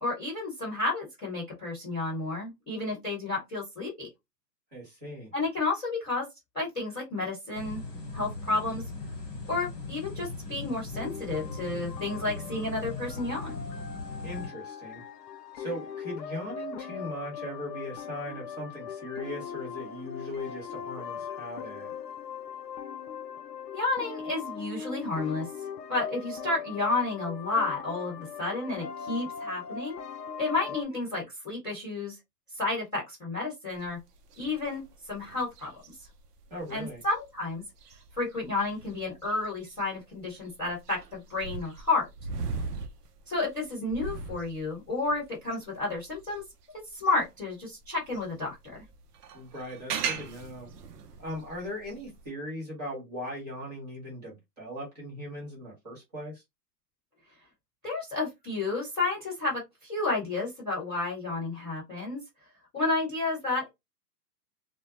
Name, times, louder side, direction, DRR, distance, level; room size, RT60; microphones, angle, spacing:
voice 1, 0.0-4.1 5.3-6.2 6.5-7.8 8.1-8.8 9.5-13.6 23.7-25.5 25.9-30.0 30.4-32.2 32.6-34.0 34.4-34.8 35.1-35.7 36.7-37.6 38.1-42.0 43.3-46.4 46.9-48.8 57.8-62.2 62.7-63.7, left 3 dB, ahead, 0.7 m, -31 dB
voice 2, 4.7-5.3 14.2-15.0 15.6-21.9 36.5-37.0 49.3-50.7 51.2-56.4, left 1 dB, 25° right, 1.0 m, -39 dB
sound 1, 7.5-14.5, left 3 dB, 25° left, 1.1 m, -39 dB
sound 2, 10.9-30.8, left 7 dB, 75° left, 0.5 m, -40 dB
sound 3, 33.7-47.4 47.8-52.3, right 5 dB, 70° right, 0.6 m, -40 dB
2.2 x 2.0 x 2.9 m
hypercardioid pair, 175°, 49 cm